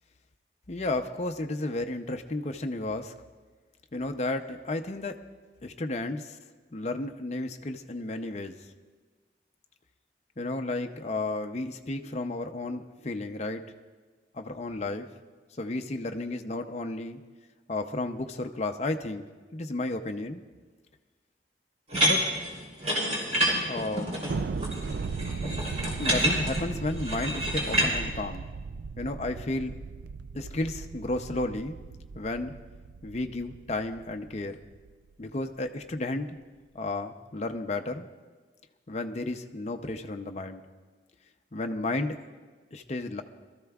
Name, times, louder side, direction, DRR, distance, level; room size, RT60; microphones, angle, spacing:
voice 1, 0.7-3.1 3.9-5.2 5.6-6.3 6.7-8.6 10.4-13.6 14.3-15.1 15.6-17.2 17.7-19.2 19.5-20.4 22.0-22.2 23.7-24.2 26.0-28.4 29.0-29.7 30.3-31.8 32.1-32.5 33.0-34.6 35.2-36.4 36.7-38.1 38.9-40.6 41.5-42.2 42.7-43.2, left 2 dB, 40° left, 6 dB, 0.6 m, -32 dB
sound 1, 21.9-27.9, equal, 40° right, 3.1 m, -28 dB
Thunder, 24.3-34.9, right 4 dB, 70° right, 0.4 m, -37 dB
22.5 x 13.5 x 2.4 m, 1.4 s
head